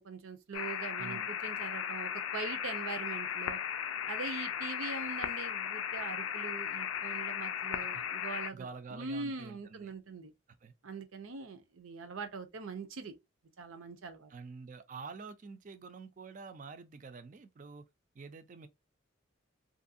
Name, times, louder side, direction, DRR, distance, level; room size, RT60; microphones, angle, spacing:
voice 1, 0.0-3.6 4.1-10.3 10.8-13.1 13.6-14.3, right 4 dB, 85° right, 0.6 m, -42 dB
sound 1, 0.5-8.5, left 9 dB, 85° left, 0.4 m, -36 dB
voice 2, 1.0-1.3 7.9-8.0 8.5-9.9 10.6-10.7 14.3-17.9 18.1-18.7, right 4 dB, 40° right, 0.4 m, -47 dB
3.0 x 2.6 x 2.5 m
head